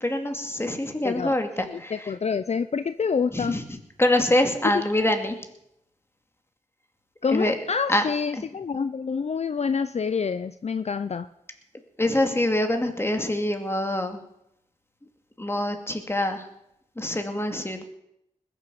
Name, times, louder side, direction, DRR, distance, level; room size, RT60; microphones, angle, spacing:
voice 1, 0.0-2.1 3.3-3.6 4.0-5.4 7.3-7.5 7.9-8.0 8.4-8.5 12.0-14.2 15.4-16.4 17.0-17.8, left 1 dB, 20° left, 5 dB, 2.2 m, -25 dB
voice 2, 1.0-1.4 1.7-3.6 4.7-4.8 7.2-11.3, left 5 dB, 55° left, 12 dB, 0.5 m, -27 dB
20.5 x 7.3 x 6.9 m, 0.80 s
wide cardioid pair, 70°, 13 cm